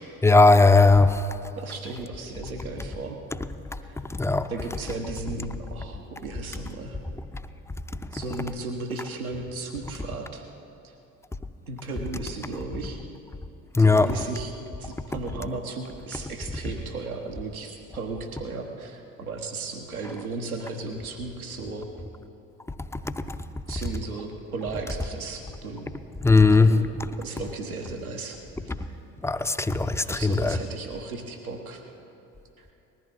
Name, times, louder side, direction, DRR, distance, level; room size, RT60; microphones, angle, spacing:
voice 1, 0.2-1.2 4.1-4.5 13.7-14.1 26.2-26.7 29.2-30.6, left 3 dB, 5° left, 10 dB, 0.6 m, -17 dB
voice 2, 1.6-3.2 3.8-4.0 4.5-7.0 8.1-10.4 11.7-13.0 13.8-14.5 14.8-21.9 23.7-25.9 26.3-26.9 27.2-28.4 28.6-29.0 30.0-31.8 32.6-32.7, right 3 dB, 85° right, 2 dB, 1.4 m, -35 dB
20.0 x 14.5 x 4.2 m, 2.8 s
figure-of-eight pair, 65°, 42 cm